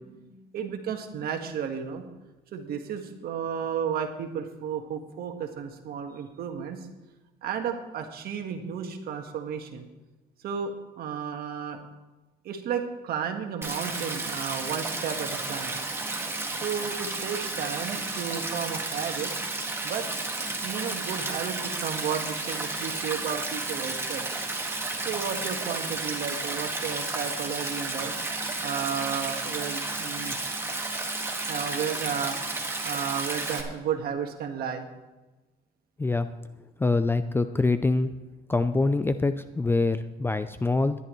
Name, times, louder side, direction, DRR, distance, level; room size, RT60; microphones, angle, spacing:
voice 1, 0.0-2.0 2.5-6.8 7.4-9.8 10.4-11.8 12.4-15.8 16.6-19.3 19.8-20.1 20.6-24.3 25.0-28.1 28.6-30.4 31.5-32.4 32.8-34.9, right 7 dB, 65° right, 5 dB, 1.6 m, -33 dB
Stream, 13.6-33.6, right 2 dB, 15° right, 1.8 m, -32 dB
voice 2, 36.8-38.1 38.5-41.0, left 3 dB, 15° left, 11 dB, 0.4 m, -24 dB
18.5 x 11.0 x 3.2 m, 1.1 s
cardioid pair, 110°, 17 cm